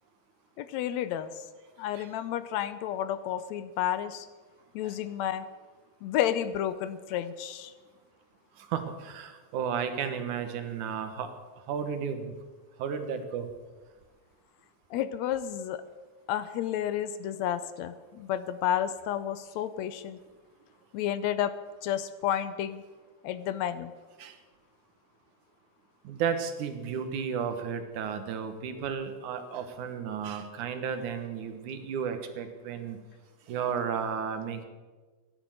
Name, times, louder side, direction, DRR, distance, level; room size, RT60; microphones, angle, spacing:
voice 1, 0.6-1.4 1.8-4.3 4.8-5.4 6.0-7.7 14.9-15.8 16.3-20.2 20.9-21.5 21.8-22.8 23.2-23.9, left 10 dB, 75° left, 13 dB, 1.8 m, -31 dB
voice 2, 8.6-11.3 11.7-12.3 12.8-13.5 24.2-24.4 26.0-33.0 33.5-34.7, right 7 dB, 80° right, 8 dB, 2.7 m, -33 dB
13.5 x 11.5 x 7.7 m, 1.3 s
omnidirectional pair, 3.4 m